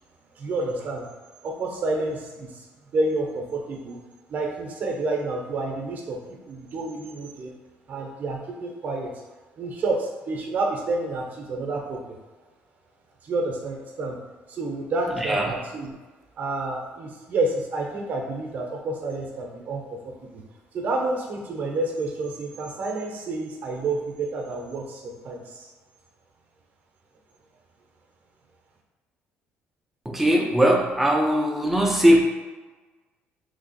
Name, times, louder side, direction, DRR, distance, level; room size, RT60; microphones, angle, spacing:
voice 1, 0.4-1.1 1.4-2.5 2.9-4.0 4.3-7.5 7.9-9.1 9.6-12.2 13.2-14.2 14.5-15.9 16.4-20.4 20.7-25.7, right 2 dB, 45° right, 1 dB, 0.7 m, -29 dB
voice 2, 15.2-15.5 30.1-32.2, equal, 5° right, 0 dB, 0.5 m, -20 dB
3.2 x 2.5 x 4.0 m, 1.3 s
cardioid pair, 135°, 4 cm